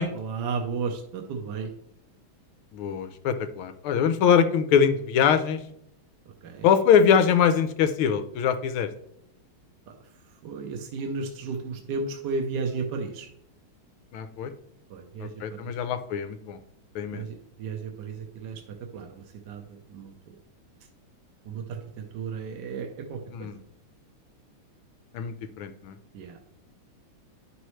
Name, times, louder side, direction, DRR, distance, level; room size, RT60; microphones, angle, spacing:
voice 1, 0.1-1.7 6.4-6.7 9.9-13.3 14.9-15.8 17.1-20.4 21.4-23.5 26.1-26.4, right 4 dB, 65° right, 3 dB, 1.3 m, -34 dB
voice 2, 2.7-5.6 6.6-8.9 14.1-14.5 15.2-16.6 16.9-17.2 23.3-23.6 25.1-26.0, left 7 dB, 90° left, 9 dB, 1.6 m, -23 dB
10.0 x 6.2 x 3.2 m, 0.74 s
omnidirectional pair, 2.3 m